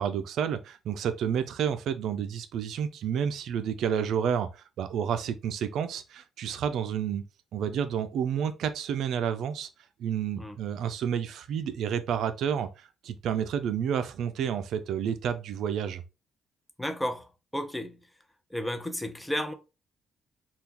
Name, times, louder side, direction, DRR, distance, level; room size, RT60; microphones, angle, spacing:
voice 1, 0.0-7.2 7.5-9.7 10.0-16.0, right 8 dB, 75° right, 0.4 m, -30 dB
voice 2, 16.8-17.3 17.5-18.0 18.5-19.5, equal, 10° left, 0.6 m, -32 dB
3.6 x 2.3 x 2.8 m
cardioid pair, 90°, 0 cm